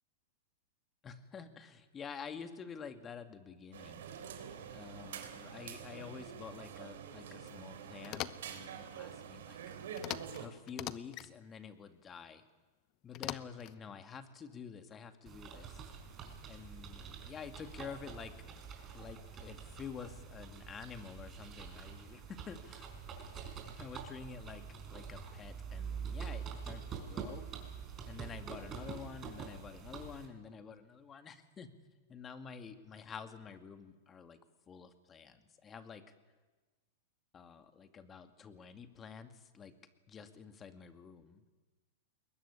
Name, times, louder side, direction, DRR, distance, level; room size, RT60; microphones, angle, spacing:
voice 1, 1.0-4.1 4.7-9.6 10.4-12.4 13.0-15.8 16.5-18.5 18.9-22.9 23.8-27.5 28.1-31.7 32.1-34.4 34.7-36.0 37.3-39.7 40.1-41.4, left 6 dB, 20° left, 8 dB, 2.1 m, -49 dB
sound 1, 3.7-10.5, right 8 dB, 75° right, 3.4 m, -47 dB
sound 2, 8.0-8.6 10.0-10.4 10.7-11.3 13.1-13.8, left 15 dB, 40° left, 0.9 m, -41 dB
sound 3, 15.3-30.3, right 6 dB, 25° right, 4.8 m, -46 dB
22.5 x 21.0 x 9.9 m, 1.3 s
hypercardioid pair, 125°, 0 cm